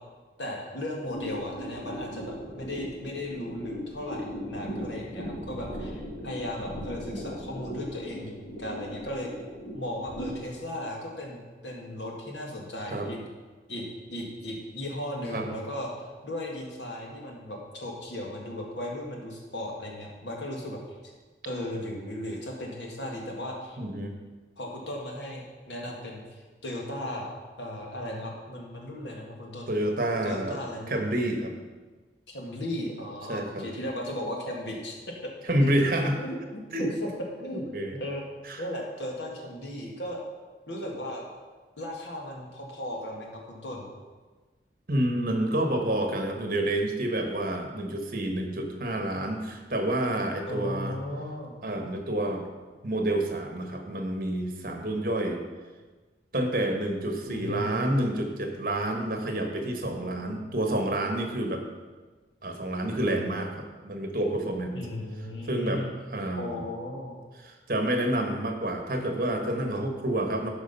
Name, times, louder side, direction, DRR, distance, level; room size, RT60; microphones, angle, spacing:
voice 1, 0.4-9.3 9.7-13.2 13.7-20.8 21.4-23.8 24.6-27.3 27.6-29.7 30.2-31.0 32.3-35.3 35.6-35.7 36.2-37.1 37.4-37.6 37.9-38.2 38.6-40.2 40.7-41.3 41.8-43.9 50.5-51.6 57.3-57.9 64.7-65.9 66.4-67.2, left 1 dB, 85° left, -1 dB, 2.1 m, -36 dB
sound 1, 1.1-10.3, equal, 45° left, 1.7 m, -38 dB
voice 2, 23.8-24.1 29.7-30.6 30.9-31.5 33.3-33.7 35.5-36.2 36.7-36.9 37.7-38.0 38.5-38.6 44.9-51.0 51.6-52.4 52.8-55.4 56.3-61.6 62.4-64.9 65.5-65.8 66.1-66.6 67.4-70.5, right 1 dB, 50° right, 4 dB, 1.3 m, -28 dB
12.5 x 5.0 x 5.5 m, 1.3 s
head